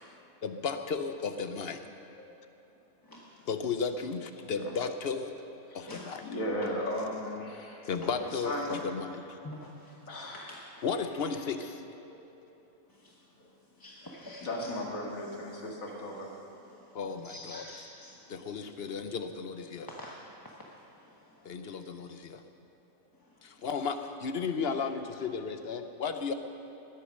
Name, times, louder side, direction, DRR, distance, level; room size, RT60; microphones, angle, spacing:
voice 1, 0.4-1.8 3.5-5.3 5.7-6.2 7.9-9.2 10.8-11.7 17.0-17.6 18.3-19.9 21.5-22.2 23.6-26.3, left 5 dB, 55° left, 8 dB, 0.8 m, -34 dB
voice 2, 4.4-4.7 5.7-5.9 6.2-7.9 8.2-8.8 10.1-10.8 12.0-12.6 14.4-16.6 24.6-24.9 25.1-25.3 25.7-25.8, left 1 dB, 70° left, -1 dB, 2.3 m, -37 dB
voice 3, 9.4-9.9 13.8-14.5 17.2-18.1 20.0-20.2, left 1 dB, 15° left, -3 dB, 0.9 m, -45 dB
19.5 x 8.5 x 6.4 m, 3.0 s
omnidirectional pair, 1.5 m